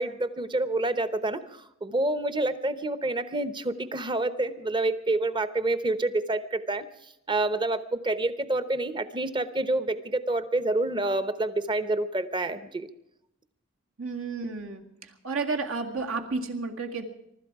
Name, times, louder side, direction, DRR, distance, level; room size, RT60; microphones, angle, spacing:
voice 1, 0.0-6.8 7.3-12.9, right 2 dB, 25° right, 12 dB, 0.9 m, -28 dB
voice 2, 14.0-14.8 15.2-17.0, right 4 dB, 75° right, 3 dB, 2.0 m, -31 dB
24.0 x 12.5 x 4.8 m, 0.81 s
head